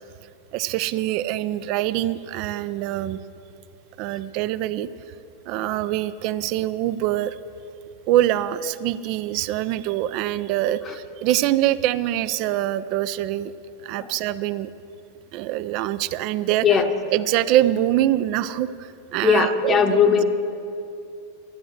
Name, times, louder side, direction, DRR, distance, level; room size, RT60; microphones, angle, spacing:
voice 1, 0.5-3.2 4.0-4.9 5.5-7.4 8.1-13.5 13.8-14.7 15.3-16.7 17.1-20.0, right 13 dB, 45° right, 15 dB, 0.4 m, -24 dB
voice 2, 19.2-20.2, left 6 dB, 25° left, 7 dB, 0.8 m, -19 dB
13.5 x 9.4 x 6.4 m, 2.7 s
figure-of-eight pair, 90°, 0 cm